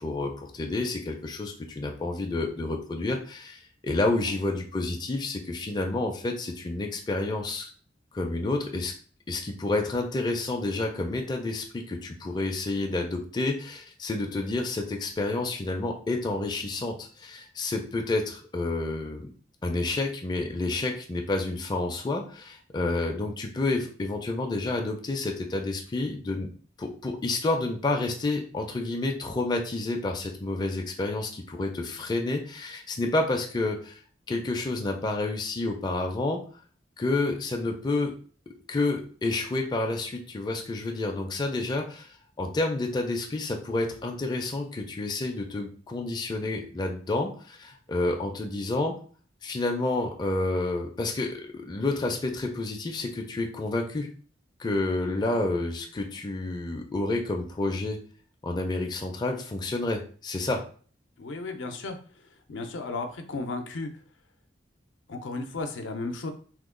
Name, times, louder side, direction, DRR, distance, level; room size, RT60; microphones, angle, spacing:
voice 1, 0.0-7.7 8.1-8.9 9.3-19.3 19.6-26.5 26.8-34.0 34.3-36.4 37.0-38.1 38.7-48.9 49.4-54.1 54.6-58.0 58.4-60.6, left 2 dB, 25° left, 2 dB, 0.4 m, -29 dB
voice 2, 61.2-64.0 65.1-66.3, left 3 dB, 80° left, 5 dB, 0.5 m, -35 dB
2.9 x 2.2 x 3.6 m, 0.43 s
head